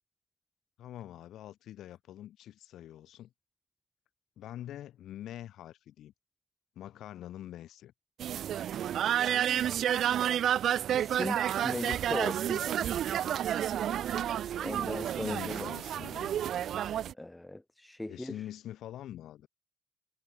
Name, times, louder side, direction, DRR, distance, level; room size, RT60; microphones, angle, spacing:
voice 1, 0.8-3.3 4.4-6.1 6.8-7.9 14.9-16.3 18.1-19.5, left 12 dB, 80° left, 5.5 m, -45 dB
sound 1, 8.2-17.1, right 10 dB, 70° right, 0.5 m, -30 dB
voice 2, 10.9-12.6 14.6-15.7 17.2-18.4, left 1 dB, 10° left, 2.1 m, -38 dB
cardioid pair, 90°, 0 cm